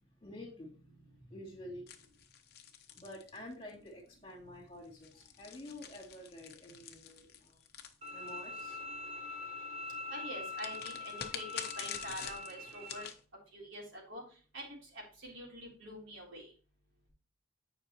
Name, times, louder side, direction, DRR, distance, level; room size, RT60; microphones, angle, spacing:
voice 1, 0.2-1.9 2.9-7.6 8.1-8.8, left 1 dB, 25° left, -3 dB, 2.6 m, -49 dB
sound 1, 1.9-3.9 4.8-8.6 10.5-13.2, left 8 dB, 50° left, 0.9 m, -46 dB
Bowed string instrument, 8.0-13.0, left 3 dB, 30° right, 1.1 m, -43 dB
voice 2, 10.1-13.1 13.5-14.2 14.5-16.5, equal, 70° right, -2 dB, 3.4 m, -46 dB
9.9 x 5.2 x 3.0 m, 0.37 s
head